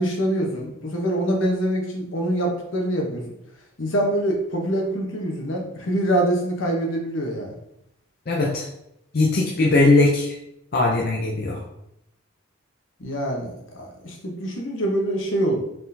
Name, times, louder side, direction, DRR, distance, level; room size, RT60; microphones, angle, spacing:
voice 1, 0.0-3.2 3.8-7.5 13.0-15.6, right 1 dB, 75° left, 0 dB, 1.0 m, -25 dB
voice 2, 8.3-8.7 9.1-10.4 10.7-11.6, left 2 dB, 50° left, -2 dB, 0.5 m, -19 dB
4.3 x 3.8 x 2.7 m, 0.80 s
head